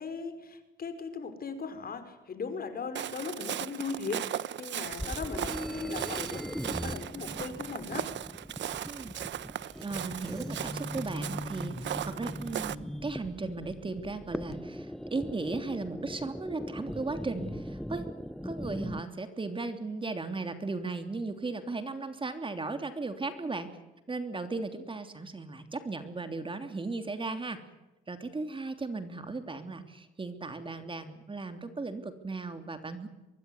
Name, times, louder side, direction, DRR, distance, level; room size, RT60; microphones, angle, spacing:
voice 1, 0.0-8.1, left 5 dB, 50° left, 9 dB, 5.5 m, -38 dB
Walk footsteps, 3.0-12.8, right 11 dB, 65° right, 1.1 m, -37 dB
sound 1, 4.9-19.0, equal, ahead, 1.1 m, -39 dB
voice 2, 8.8-9.1 9.8-18.1 18.4-23.7 24.1-27.6 28.1-33.1, right 3 dB, 25° right, 8 dB, 3.1 m, -36 dB
24.5 x 21.0 x 9.7 m, 1.0 s
cardioid pair, 90°, 20 cm